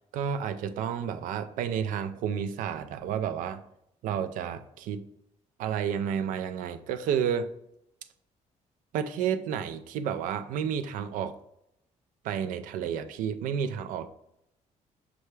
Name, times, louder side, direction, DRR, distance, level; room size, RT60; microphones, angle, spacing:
voice 1, 0.1-3.6 4.0-5.0 5.6-7.5 8.9-11.4 12.2-14.1, right 8 dB, 85° right, 10 dB, 0.4 m, -31 dB
6.7 x 2.3 x 3.1 m, 0.80 s
cardioid pair, 85°, 13 cm